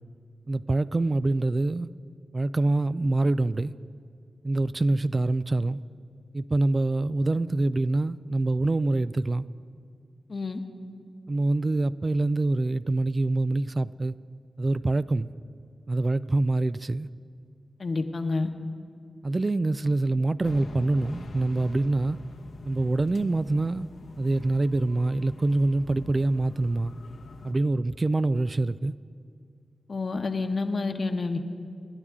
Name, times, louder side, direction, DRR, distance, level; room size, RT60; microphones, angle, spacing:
voice 1, 0.5-1.9 2.3-3.7 4.4-5.8 6.3-9.5 11.3-14.1 14.6-15.3 15.9-17.1 19.2-22.2 22.7-23.9 24.2-26.9 27.4-28.9, right 2 dB, 40° right, 0.4 m, -25 dB
voice 2, 17.8-18.5 29.9-31.4, left 3 dB, 55° left, 1.1 m, -28 dB
sound 1, 20.4-27.5, left 3 dB, 85° left, 1.1 m, -45 dB
27.0 x 11.0 x 3.7 m
cardioid pair, 55°, 0 cm